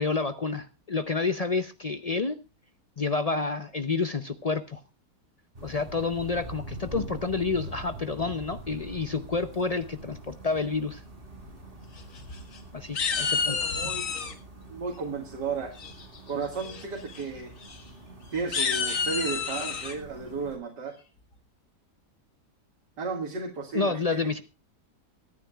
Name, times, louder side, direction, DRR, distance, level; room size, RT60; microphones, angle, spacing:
voice 1, 0.0-2.4 3.0-4.8 5.6-11.0 12.7-13.7 23.7-24.4, left 4 dB, 70° left, 10 dB, 0.3 m, -29 dB
sound 1, 5.5-20.6, right 1 dB, 30° right, 3.7 m, -44 dB
sound 2, 12.0-12.6 12.9-14.3 15.8-16.2 16.6-16.8 17.1-17.2 17.6-17.8 18.4-19.9, left 5 dB, 50° left, 1.9 m, -29 dB
voice 2, 13.5-14.1 14.7-15.7 16.3-17.5 18.3-20.9 23.0-24.3, right 4 dB, 85° right, 1 dB, 2.6 m, -33 dB
24.0 x 9.7 x 2.3 m, 0.31 s
omnidirectional pair, 1.8 m